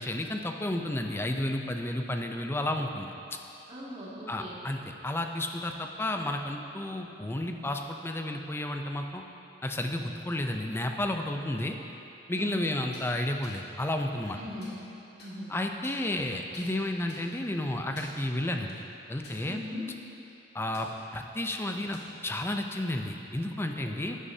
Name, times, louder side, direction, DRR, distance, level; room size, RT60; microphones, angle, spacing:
voice 1, 0.0-3.1 4.3-9.2 9.6-11.8 12.3-14.4 15.5-18.8 19.1-19.6 20.5-24.2, left 1 dB, 15° left, 4 dB, 0.5 m, -32 dB
voice 2, 3.7-4.6 12.3-12.8 14.3-14.7 15.1-15.5 19.4-19.9 23.8-24.2, left 1 dB, 35° right, -7 dB, 2.1 m, -41 dB
sound 1, 12.9-13.1 13.4-13.6 14.2-14.8 15.2-15.3 15.8-16.3 16.5-16.7 17.1-17.2 17.8-18.2 18.7-18.8 19.2-19.8 20.1-20.3 20.7-20.9 21.7-22.1, left 2 dB, 60° left, 2.0 m, -50 dB
12.5 x 9.9 x 2.8 m, 2.9 s
head